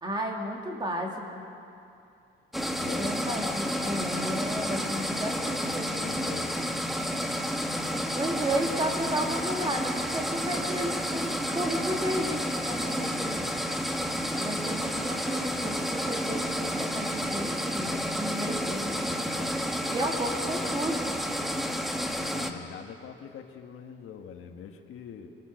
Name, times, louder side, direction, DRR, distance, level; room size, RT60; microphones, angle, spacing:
voice 1, 0.0-1.4 3.0-6.0 8.1-13.5 14.4-19.4 19.9-21.2, right 1 dB, 20° right, 1 dB, 2.7 m, -33 dB
sound 1, 2.5-22.5, equal, ahead, 1.2 m, -30 dB
voice 2, 2.7-3.3 5.9-6.6 22.3-25.3, left 7 dB, 80° left, 4 dB, 1.7 m, -43 dB
sound 2, 8.8-9.0 9.7-9.9 10.6-10.8 11.5-11.7 12.4-12.5 13.3-13.5, right 2 dB, 70° right, 4.4 m, -49 dB
25.5 x 19.5 x 6.6 m, 2.6 s
cardioid pair, 150°, 21 cm